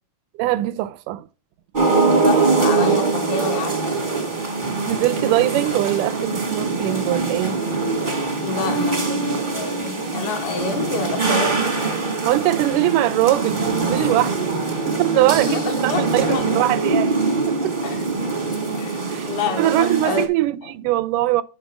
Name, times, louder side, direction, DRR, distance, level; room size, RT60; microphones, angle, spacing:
voice 1, 0.4-1.3 4.9-7.6 12.2-14.4 14.9-17.1 17.5-17.8 19.1-19.3 19.6-21.4, right 16 dB, 85° right, 2.1 m, -21 dB
sound 1, 1.7-20.3, right 3 dB, 40° right, 0.6 m, -23 dB
voice 2, 2.2-4.4 8.4-11.6 15.3-16.6 17.8-18.0 18.7-20.7, left 5 dB, 70° left, 2.6 m, -28 dB
7.3 x 5.2 x 6.0 m
omnidirectional pair, 3.7 m